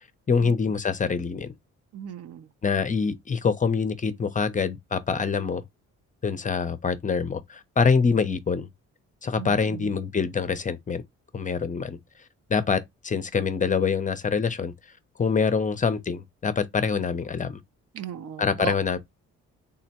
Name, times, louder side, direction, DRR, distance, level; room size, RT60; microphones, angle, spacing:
voice 1, 0.3-1.5 2.6-5.6 6.2-8.7 9.2-11.0 11.3-12.0 12.5-14.7 15.2-17.6 18.4-19.0, left 5 dB, 25° left, 0.5 m, -25 dB
voice 2, 1.9-2.5 9.4-9.9 17.9-18.7, right 8 dB, 55° right, 0.5 m, -36 dB
3.6 x 2.1 x 2.8 m
cardioid pair, 90°, 30 cm